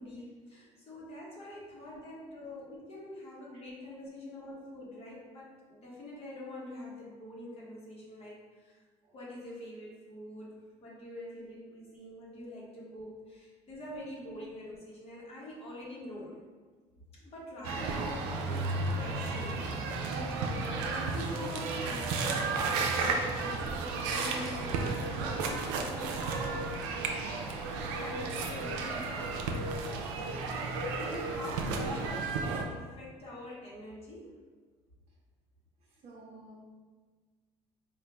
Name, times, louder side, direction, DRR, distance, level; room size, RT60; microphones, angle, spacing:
voice 1, 0.0-8.8 9.1-10.5 10.8-16.4 17.2-27.4 27.8-29.5 30.3-34.4, left 1 dB, 45° left, -5 dB, 1.2 m, -45 dB
sound 1, 17.6-32.6, right 3 dB, 85° right, 0.5 m, -33 dB
voice 2, 35.8-36.6, right 2 dB, 55° right, -5 dB, 0.7 m, -55 dB
4.1 x 2.5 x 3.3 m, 1.4 s
supercardioid pair, 90°, 14 cm